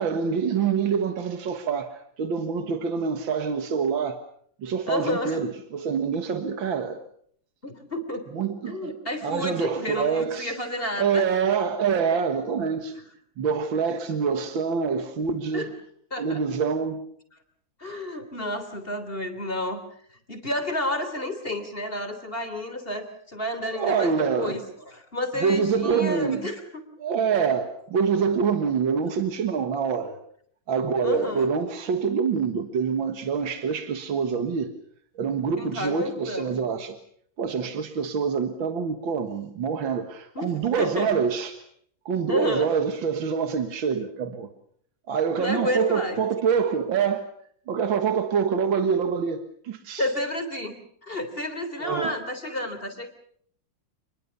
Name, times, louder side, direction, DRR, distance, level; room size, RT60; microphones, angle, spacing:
voice 1, 0.0-4.2 4.6-7.0 8.3-8.9 9.2-10.6 11.0-13.0 13.4-15.7 16.2-17.0 23.7-24.6 25.4-26.5 27.0-30.2 30.7-34.7 35.2-37.0 37.4-41.6 42.1-44.5 45.1-47.3 47.7-50.1 51.8-52.1, right 6 dB, 80° right, 2.3 m, -26 dB
voice 2, 4.9-5.4 7.6-8.3 8.7-11.3 12.9-13.0 15.5-15.7 16.1-16.4 17.8-19.8 20.3-24.6 24.9-26.6 31.0-31.5 35.6-36.6 40.3-40.5 40.8-41.1 42.3-42.7 45.4-46.2 50.0-50.7 51.0-53.1, left 1 dB, 30° left, 3.5 m, -30 dB
28.0 x 21.5 x 7.0 m
omnidirectional pair, 2.1 m